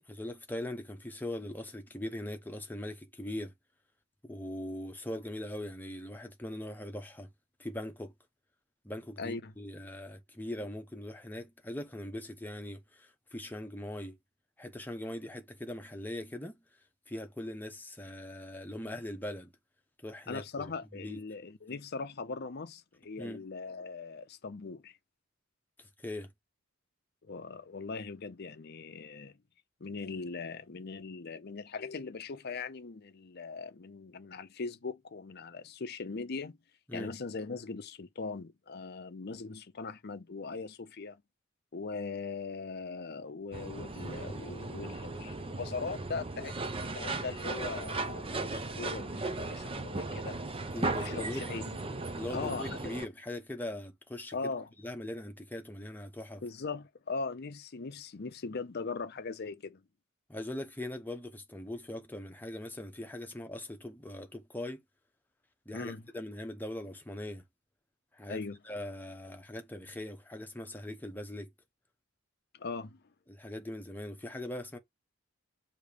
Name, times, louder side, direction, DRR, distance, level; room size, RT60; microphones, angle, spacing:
voice 1, 0.1-3.5 4.2-7.3 7.6-8.1 8.8-14.2 14.6-16.6 17.1-19.5 20.0-21.2 23.2-23.5 25.8-26.3 36.9-37.1 50.7-51.5 52.1-54.5 54.8-56.4 60.3-64.8 65.7-67.4 68.1-71.5 73.3-74.8, left 1 dB, 10° left, 1.0 m, -41 dB
voice 2, 9.2-9.5 20.3-25.0 27.2-29.4 29.8-36.6 36.9-41.2 41.7-50.4 51.0-51.6 52.3-52.7 54.3-54.7 56.4-59.8 65.7-66.0 68.3-68.6 72.5-73.0, left 4 dB, 50° left, 0.6 m, -40 dB
sound 1, 43.5-53.1, right 2 dB, 25° right, 0.6 m, -37 dB
6.5 x 2.9 x 5.1 m
head